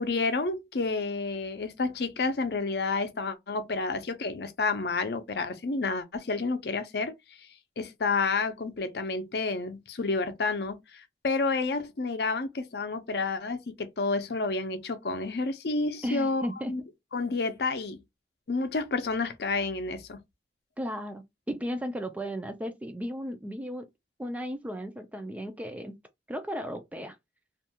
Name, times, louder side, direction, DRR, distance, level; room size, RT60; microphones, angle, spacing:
voice 1, 0.0-7.1 7.8-16.4 16.7-16.8 17.1-18.0 18.5-20.2, left 3 dB, 65° left, 0.5 m, -30 dB
voice 2, 16.0-16.8 20.8-23.9 24.2-25.9 26.3-27.2, equal, 10° right, 0.3 m, -35 dB
2.4 x 2.2 x 2.8 m
head